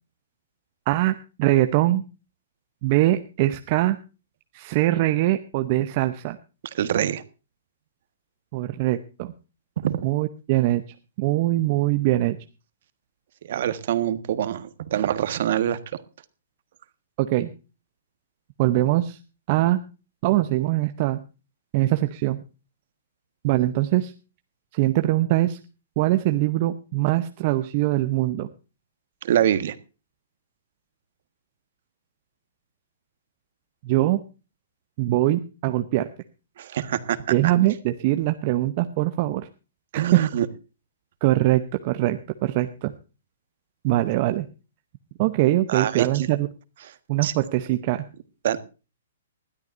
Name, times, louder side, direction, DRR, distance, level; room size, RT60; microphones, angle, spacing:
voice 1, 0.9-2.0 2.8-4.0 4.5-6.4 8.5-9.3 10.0-10.8 11.2-12.4 17.2-17.5 18.6-19.2 19.5-19.8 20.2-21.2 21.7-22.4 23.4-24.1 24.7-25.6 26.0-28.5 33.8-34.2 35.0-36.1 37.3-39.5 40.1-40.2 41.2-42.9 43.8-44.5 45.2-46.5 47.1-48.0, right 16 dB, 30° right, 9 dB, 0.8 m, -22 dB
voice 2, 6.7-7.2 9.8-10.0 13.5-15.8 29.2-29.7 36.6-37.2 39.9-40.5 45.7-46.3 47.2-47.3 48.4-48.6, right 10 dB, 50° right, 13 dB, 1.5 m, -24 dB
20.5 x 13.0 x 2.6 m, 0.32 s
hypercardioid pair, 165°, 0 cm